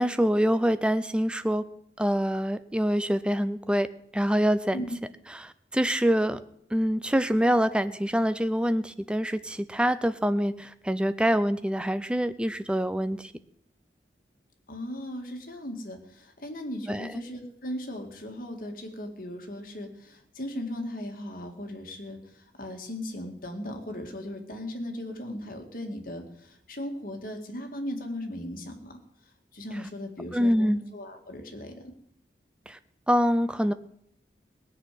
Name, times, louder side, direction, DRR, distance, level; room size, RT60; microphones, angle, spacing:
voice 1, 0.0-1.6 2.0-3.9 4.1-4.9 5.4-6.4 6.7-13.3 16.9-17.2 30.3-30.8 32.7-32.8 33.1-33.7, equal, 5° right, 12 dB, 0.5 m, -25 dB
voice 2, 14.7-29.0 29.5-31.9, left 1 dB, 50° left, 4 dB, 2.0 m, -37 dB
18.5 x 6.3 x 9.2 m, 0.74 s
head